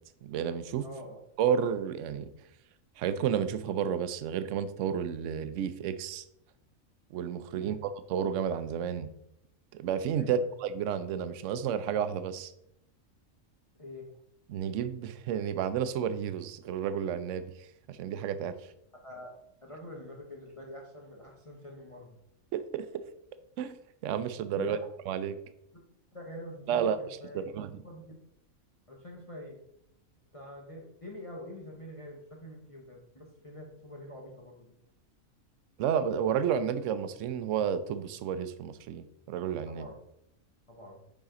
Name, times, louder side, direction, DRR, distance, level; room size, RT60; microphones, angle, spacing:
voice 1, 0.2-0.9 1.4-2.3 3.0-6.2 7.1-9.1 9.7-12.5 14.5-17.4 17.9-18.5 22.5-23.0 23.6-23.8 24.0-24.8 25.1-25.4 26.7-27.0 27.3-27.8 35.8-39.9, right 8 dB, 70° right, 12 dB, 0.9 m, -31 dB
voice 2, 0.8-1.2 7.5-7.8 10.2-10.5 13.8-14.1 19.0-19.4 19.6-22.2 24.6-24.9 26.1-27.5 27.8-28.1 28.9-29.6 30.3-34.7 39.7-39.9 40.7-41.0, left 1 dB, 30° left, -1 dB, 0.8 m, -45 dB
7.1 x 4.9 x 3.7 m, 0.78 s
omnidirectional pair, 1.4 m